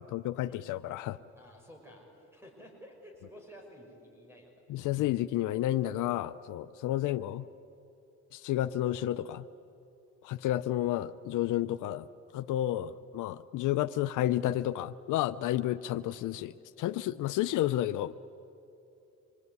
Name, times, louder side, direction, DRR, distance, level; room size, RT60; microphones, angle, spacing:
voice 1, 0.0-1.2 4.7-7.4 8.3-9.4 10.2-12.0 12.3-18.1, left 13 dB, 85° left, 12 dB, 0.6 m, -31 dB
voice 2, 1.4-4.5 12.7-13.0, equal, 10° right, 1 dB, 5.9 m, -52 dB
25.5 x 22.5 x 9.5 m, 2.8 s
cardioid pair, 90°, 30 cm